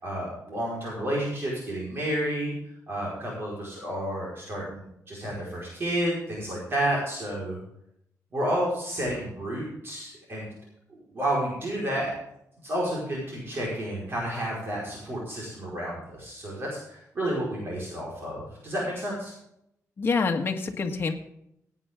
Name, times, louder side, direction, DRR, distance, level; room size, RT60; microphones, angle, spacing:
voice 1, 0.0-2.6 2.9-7.6 8.3-10.5 11.1-12.1 12.6-19.3, right 1 dB, 40° right, -4 dB, 4.8 m, -31 dB
voice 2, 20.0-21.1, left 4 dB, 40° left, 3 dB, 1.6 m, -26 dB
16.5 x 9.5 x 3.7 m, 0.76 s
wide cardioid pair, 155°, 6 cm